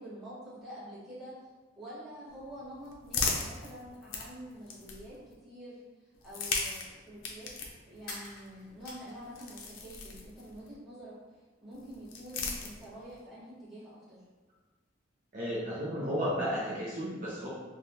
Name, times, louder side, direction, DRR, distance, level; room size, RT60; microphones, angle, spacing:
voice 1, 0.0-1.3 1.8-5.1 5.4-5.8 6.2-7.5 7.9-11.1 11.6-14.2, equal, ahead, -13 dB, 1.3 m, -47 dB
sound 1, 2.3-5.3 6.1-10.7 11.7-13.2, left 4 dB, 85° left, 0.5 m, -38 dB
sound 2, 8.0-9.9 10.2-11.1, left 2 dB, 50° left, 0.7 m, -48 dB
voice 2, 15.3-17.5, equal, 45° right, -7 dB, 0.6 m, -33 dB
3.4 x 2.3 x 2.7 m, 1.3 s
head